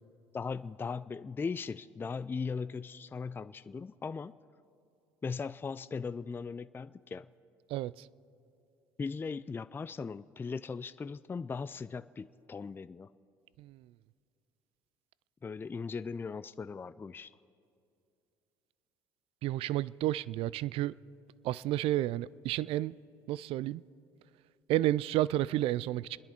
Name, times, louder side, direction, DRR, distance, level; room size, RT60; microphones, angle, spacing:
voice 1, 0.3-4.3 5.2-7.3 9.0-13.1 15.4-17.3, left 5 dB, 20° left, 14 dB, 0.4 m, -38 dB
voice 2, 7.7-8.1 13.6-13.8 19.4-20.9 21.4-23.0 23.3-23.8 24.7-26.2, right 14 dB, 65° right, 21 dB, 0.4 m, -31 dB
29.0 x 10.5 x 4.5 m, 2.6 s
hypercardioid pair, 70°, 11 cm